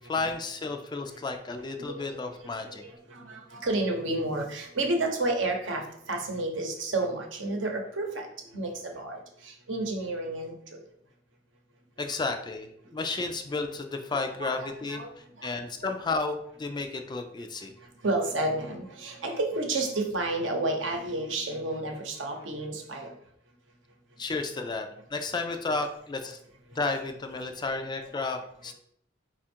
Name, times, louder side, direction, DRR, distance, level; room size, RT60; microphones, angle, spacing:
voice 1, 0.1-2.8 10.6-10.8 12.0-15.0 15.4-17.7 24.2-26.4 26.7-28.7, left 3 dB, 25° left, 6 dB, 0.4 m, -32 dB
voice 2, 1.8-8.3 8.5-10.8 14.4-15.1 15.4-15.5 18.0-23.1, right 2 dB, 70° right, 2 dB, 0.8 m, -31 dB
4.3 x 2.4 x 4.3 m, 0.69 s
head